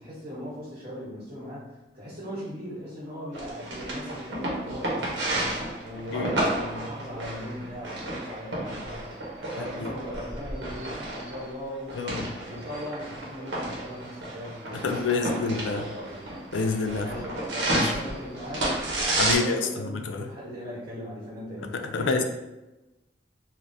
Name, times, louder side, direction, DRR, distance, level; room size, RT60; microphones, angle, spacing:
voice 1, 0.0-9.1 9.5-16.3 17.0-18.8 19.2-22.2, equal, 35° right, -9 dB, 1.0 m, -39 dB
sound 1, 3.3-19.3, right 1 dB, 90° right, 0.8 m, -32 dB
voice 2, 12.0-12.3 14.8-15.9 16.5-17.1 17.7-18.0 19.2-20.2 21.9-22.2, left 4 dB, 85° left, 6 dB, 0.3 m, -27 dB
3.2 x 2.4 x 2.6 m, 1.0 s
head